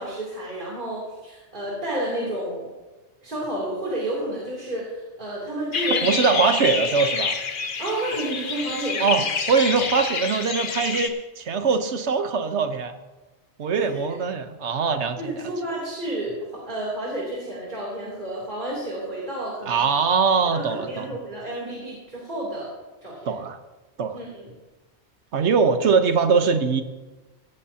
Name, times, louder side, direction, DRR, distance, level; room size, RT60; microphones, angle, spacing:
voice 1, 0.0-2.7 3.2-6.3 6.9-7.0 7.8-9.2 13.8-14.2 15.2-19.9 20.5-22.7 23.0-23.3 24.1-24.5, right 1 dB, 45° right, -7 dB, 3.3 m, -31 dB
sound 1, 5.7-11.1, left 5 dB, 50° left, 1.1 m, -27 dB
voice 2, 6.0-7.4 9.0-12.9 13.6-15.5 19.7-21.2 23.3-23.6 24.0-24.2 25.3-26.8, right 5 dB, 80° right, 8 dB, 1.3 m, -22 dB
16.5 x 13.0 x 2.8 m, 1.2 s
omnidirectional pair, 1.1 m